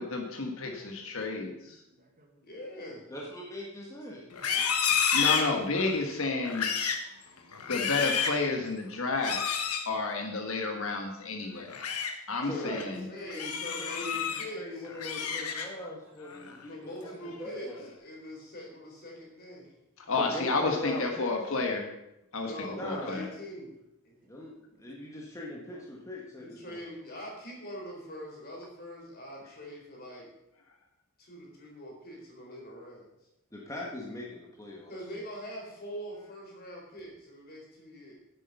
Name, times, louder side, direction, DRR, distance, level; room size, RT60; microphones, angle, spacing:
voice 1, 0.0-1.8 5.1-6.7 7.7-11.7 12.3-13.0 20.0-21.9 22.3-22.5 22.8-23.2, left 3 dB, 65° left, 3 dB, 1.4 m, -31 dB
voice 2, 0.8-1.1 1.9-2.4 7.1-7.7 12.9-13.3 14.4-14.6 16.0-16.1 16.5-16.6, right 2 dB, 40° right, 2 dB, 1.7 m, -56 dB
voice 3, 2.4-3.1 12.4-14.9 16.7-19.7 22.4-23.8 24.0-24.1 26.4-30.3 31.2-33.1 34.9-38.1, equal, 45° left, -2 dB, 4.0 m, -43 dB
voice 4, 3.1-4.2 12.4-12.8 13.3-14.1 14.6-17.9 20.2-21.3 22.7-23.3 24.2-26.8 33.5-35.0, left 1 dB, 15° left, -3 dB, 1.6 m, -41 dB
Livestock farm animals working animals, 4.3-6.0 6.4-7.1 7.5-8.4 9.2-9.9 11.5-12.1 12.6-12.8 13.3-14.5 14.8-15.9 16.3-16.6 17.0-17.5, left 7 dB, 85° left, 1.2 m, -30 dB
10.0 x 8.5 x 5.4 m, 0.86 s
head